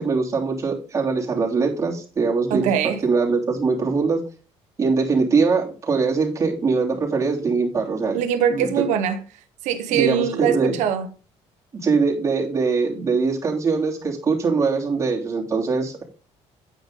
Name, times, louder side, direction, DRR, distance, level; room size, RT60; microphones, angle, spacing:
voice 1, 0.0-2.7 3.0-4.2 4.8-8.2 8.5-8.7 9.9-10.8 11.8-16.0, right 4 dB, 25° right, 3.0 m, -22 dB
voice 2, 2.5-3.0 8.1-9.2 9.6-11.1, right 8 dB, 90° right, 1.3 m, -22 dB
9.2 x 8.1 x 3.9 m
cardioid pair, 150°, 12 cm